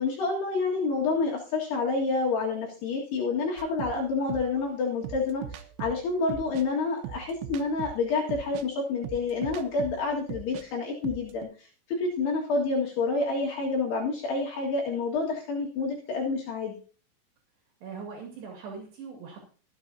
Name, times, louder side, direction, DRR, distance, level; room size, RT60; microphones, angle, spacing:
voice 1, 0.0-16.7, left 4 dB, 65° left, -2 dB, 3.9 m, -28 dB
sound 1, 3.6-10.7 10.9-11.5, right 9 dB, 85° right, 3.5 m, -40 dB
voice 2, 17.8-19.5, right 5 dB, 70° right, 1 dB, 4.4 m, -41 dB
23.5 x 8.3 x 2.8 m, 0.40 s
omnidirectional pair, 5.2 m